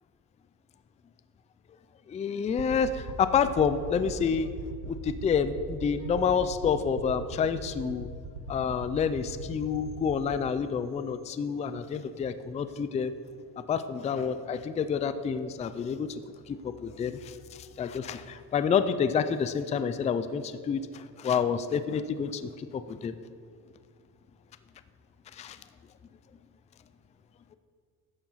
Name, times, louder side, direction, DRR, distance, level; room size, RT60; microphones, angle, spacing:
voice 1, 2.1-4.5 4.8-8.1 8.5-13.2 13.7-16.1 16.5-23.1 25.3-25.6, left 6 dB, 20° left, 11 dB, 0.3 m, -28 dB
sound 1, 2.5-10.1, right 3 dB, 85° right, 1.2 m, -40 dB
11.5 x 7.1 x 5.7 m, 2.1 s
cardioid pair, 135°, 38 cm